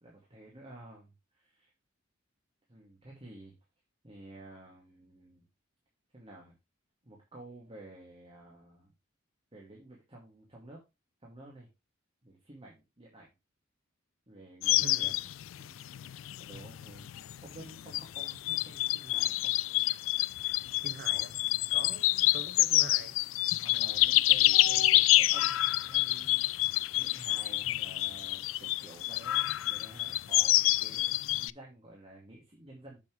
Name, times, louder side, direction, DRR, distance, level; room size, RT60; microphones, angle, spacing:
voice 1, 0.0-1.7 2.7-3.5 4.0-5.4 6.1-6.5 7.0-8.9 9.5-10.8 11.2-11.7 12.2-13.3 14.3-15.3 15.6-15.8 16.4-17.1 17.4-19.5 20.9-21.5 23.6-33.0, right 1 dB, 30° right, 2.5 m, -51 dB
sound 1, 14.6-31.5, left 17 dB, 70° left, 0.3 m, -28 dB
voice 2, 14.8-15.1 16.5-16.7 20.8-21.3 21.7-23.2, right 3 dB, 55° right, 1.2 m, -45 dB
7.6 x 7.6 x 3.3 m
head